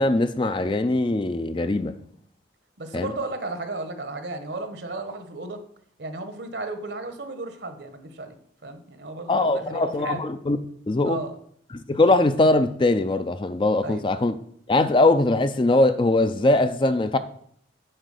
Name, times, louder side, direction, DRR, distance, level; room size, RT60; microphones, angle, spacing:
voice 1, 0.0-2.0 2.9-3.1 9.3-10.6 10.9-11.2 11.7-14.3 14.7-17.2, left 2 dB, 25° left, 0.4 m, -21 dB
voice 2, 2.8-5.6 6.0-8.3 8.6-10.3 11.0-11.4 13.8-14.0, right 2 dB, 60° right, 1.2 m, -34 dB
8.9 x 4.5 x 6.5 m
head